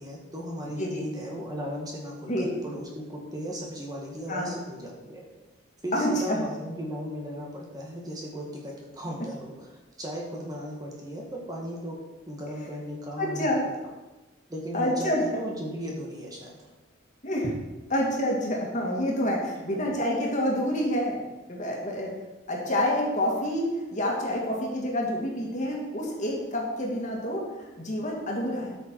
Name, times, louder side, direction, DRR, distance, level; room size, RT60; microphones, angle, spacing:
voice 1, 0.0-5.3 5.8-9.7 10.0-12.0 12.3-13.7 14.5-16.7, equal, 20° right, -2 dB, 1.8 m, -36 dB
voice 2, 5.9-6.5 13.2-13.6 14.7-15.2 17.2-17.6 17.9-21.2 21.5-22.1 22.5-28.7, equal, 40° left, -1 dB, 2.2 m, -28 dB
13.0 x 6.6 x 4.7 m, 1.1 s
head